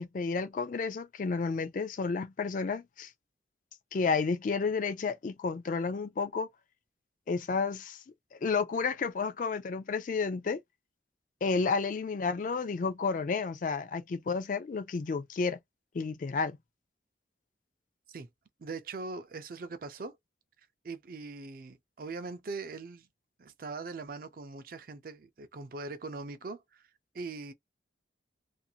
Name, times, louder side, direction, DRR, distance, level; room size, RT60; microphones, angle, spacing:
voice 1, 0.0-3.1 3.9-6.5 7.3-8.0 8.4-10.6 11.4-15.6 15.9-16.6, left 4 dB, 45° left, 0.3 m, -31 dB
voice 2, 18.6-20.2 20.8-23.1 23.4-26.8 27.1-27.5, right 3 dB, 50° right, 0.4 m, -41 dB
2.5 x 2.4 x 2.7 m
head